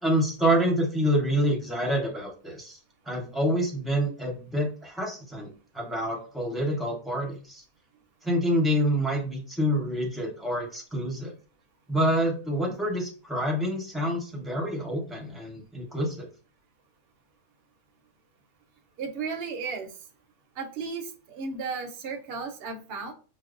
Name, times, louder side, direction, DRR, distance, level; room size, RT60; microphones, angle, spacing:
voice 1, 0.0-2.8 3.1-5.5 5.7-7.6 8.2-11.3 11.9-16.3, equal, ahead, -1 dB, 0.6 m, -27 dB
voice 2, 19.0-19.9 20.5-23.1, right 5 dB, 55° right, 5 dB, 0.7 m, -34 dB
4.9 x 2.0 x 2.5 m, 0.38 s
omnidirectional pair, 1.5 m